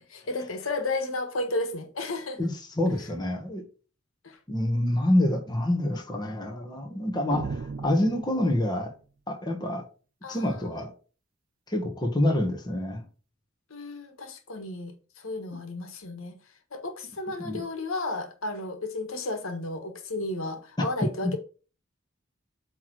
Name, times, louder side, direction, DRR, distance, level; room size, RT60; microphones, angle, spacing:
voice 1, 0.3-2.4 4.2-4.4 10.2-10.5 13.7-16.3 16.7-21.4, left 2 dB, 85° left, 1.4 m, -33 dB
voice 2, 2.4-3.6 4.5-8.9 9.3-9.8 10.3-10.9 11.7-13.0 17.4-17.6 21.2-21.3, left 1 dB, 20° left, 1.3 m, -27 dB
sound 1, 7.3-8.9, right 4 dB, 45° right, 0.3 m, -36 dB
8.4 x 3.2 x 6.1 m
head